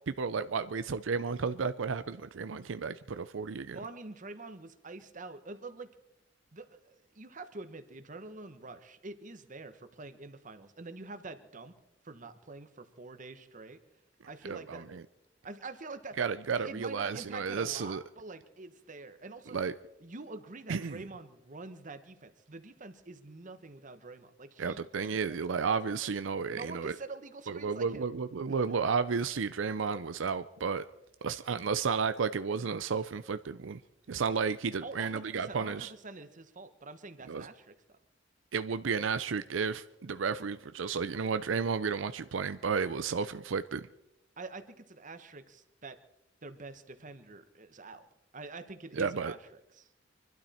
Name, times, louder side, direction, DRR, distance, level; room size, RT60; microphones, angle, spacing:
voice 1, 0.1-3.8 14.5-15.0 16.2-18.0 19.5-19.7 20.7-21.0 24.6-26.9 27.5-30.8 31.2-33.8 34.1-35.9 37.3-37.5 38.5-43.9 48.9-49.3, right 5 dB, 85° right, 0.5 m, -32 dB
voice 2, 3.7-5.9 6.5-11.7 12.0-13.8 14.3-14.9 15.4-16.2 16.5-19.6 20.0-25.6 26.5-28.1 34.8-38.0 44.4-46.0 46.4-48.1 48.3-49.9, right 3 dB, 45° right, 1.2 m, -46 dB
25.5 x 12.0 x 4.3 m
head